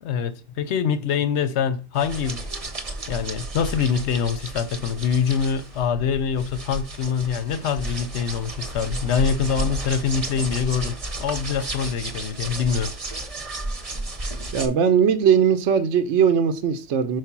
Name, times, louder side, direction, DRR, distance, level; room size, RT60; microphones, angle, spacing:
voice 1, 0.0-2.4 3.1-12.9, left 7 dB, 60° left, 0.8 m, -24 dB
sound 1, 1.9-14.7, right 2 dB, 30° right, 0.9 m, -32 dB
voice 2, 14.5-17.2, right 7 dB, 65° right, 0.9 m, -19 dB
4.9 x 4.8 x 5.9 m
omnidirectional pair, 1.5 m